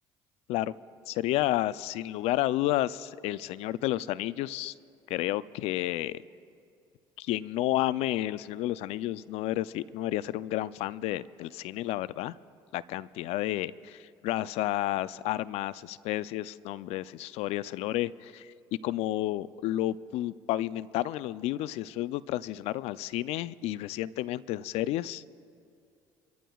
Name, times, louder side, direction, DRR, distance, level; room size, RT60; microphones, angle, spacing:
voice 1, 1.1-4.7 5.1-6.2 7.2-12.3 12.7-25.3, left 15 dB, 75° left, 18 dB, 0.4 m, -31 dB
26.5 x 14.0 x 2.3 m, 2.5 s
supercardioid pair, 75°, 11 cm